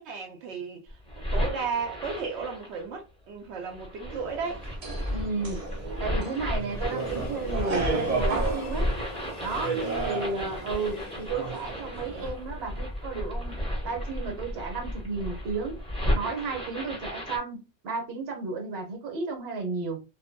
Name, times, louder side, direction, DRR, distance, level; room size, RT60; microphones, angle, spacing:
voice 1, 0.0-4.6 9.8-10.5, right 5 dB, 85° right, 0.9 m, -35 dB
sound 1, 0.9-2.9 3.6-17.4, left 1 dB, 5° left, 0.7 m, -33 dB
sound 2, 4.1-12.3, right 4 dB, 45° right, 0.6 m, -34 dB
Train, 4.6-13.6 14.0-14.1, left 4 dB, 55° left, 0.5 m, -46 dB
voice 2, 5.1-5.6 6.0-8.9 9.4-9.8 10.0-15.8 16.1-20.0, right 4 dB, 70° right, 1.0 m, -33 dB
2.5 x 2.2 x 2.5 m
omnidirectional pair, 1.1 m